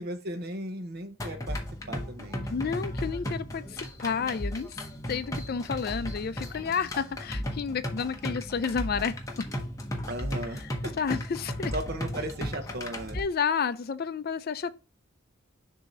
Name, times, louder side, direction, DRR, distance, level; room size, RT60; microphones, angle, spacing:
voice 1, 0.0-1.6 1.9-2.5 10.1-11.2 11.7-13.2, right 1 dB, 50° right, 0.8 m, -36 dB
sound 1, 1.2-13.2, equal, 15° left, 0.8 m, -35 dB
voice 2, 2.5-4.7 5.1-9.5 11.0-11.7 13.1-14.8, left 6 dB, 45° left, 0.4 m, -31 dB
6.9 x 2.8 x 5.1 m
head